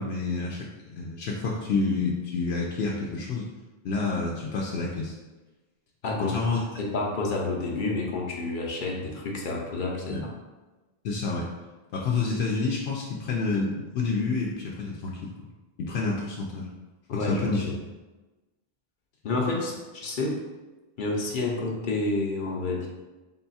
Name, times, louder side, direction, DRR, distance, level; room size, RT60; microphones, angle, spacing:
voice 1, 0.0-3.5 3.8-5.1 6.3-6.6 10.1-10.2 11.0-11.5 11.9-15.3 15.8-16.7 17.1-17.7, left 3 dB, 90° left, -3 dB, 0.8 m, -28 dB
voice 2, 6.0-6.4 6.8-10.2 17.1-17.7 19.2-20.4 21.0-22.9, left 2 dB, 55° left, -1 dB, 0.8 m, -29 dB
3.6 x 2.3 x 4.0 m, 1.2 s
omnidirectional pair, 1.0 m